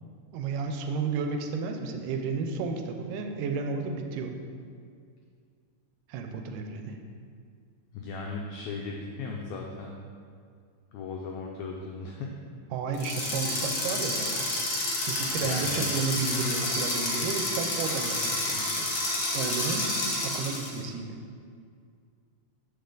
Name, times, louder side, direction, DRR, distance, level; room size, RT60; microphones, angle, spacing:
voice 1, 0.3-4.4 6.1-7.0 12.7-14.5 15.0-18.9 19.3-19.9 20.2-21.1, right 5 dB, 85° right, 4 dB, 2.1 m, -32 dB
voice 2, 7.9-9.9 10.9-12.3 15.4-15.8, left 4 dB, 90° left, 0 dB, 1.6 m, -37 dB
sound 1, 12.9-20.8, left 2 dB, 55° left, 1.4 m, -29 dB
6.6 x 5.6 x 3.8 m, 2.2 s
omnidirectional pair, 3.8 m